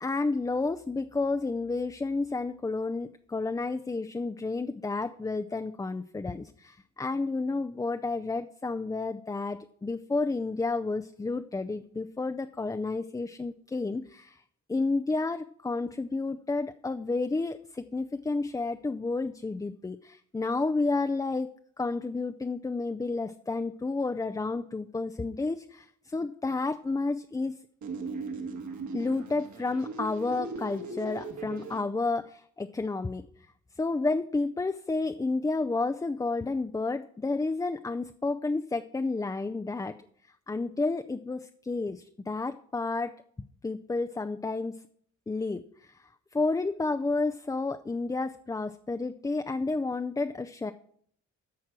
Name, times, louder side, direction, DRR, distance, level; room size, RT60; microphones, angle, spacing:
voice 1, 0.0-14.4 14.7-21.5 21.8-27.5 28.9-33.2 33.8-40.0 40.5-43.2 43.6-44.7 45.3-46.0 46.3-50.7, left 3 dB, 10° left, 8 dB, 0.4 m, -31 dB
sound 1, 27.8-31.8, right 3 dB, 70° right, 2.1 m, -38 dB
13.0 x 4.6 x 7.4 m, 0.63 s
cardioid pair, 90°, 30 cm